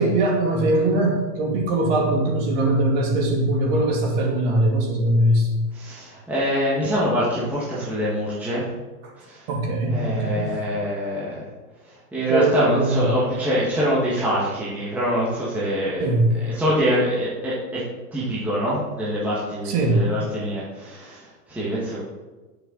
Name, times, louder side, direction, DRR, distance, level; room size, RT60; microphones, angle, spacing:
voice 1, 0.0-5.6 9.0-9.1 9.5-10.6 12.3-13.0 16.0-16.3 19.6-20.1, right 1 dB, 30° right, -1 dB, 2.6 m, -21 dB
voice 2, 5.7-8.7 9.2-9.5 9.9-11.5 11.9-16.1 16.5-17.8 18.1-22.0, equal, 5° right, -8 dB, 1.6 m, -25 dB
19.5 x 6.8 x 3.9 m, 1.2 s
supercardioid pair, 165°, 48 cm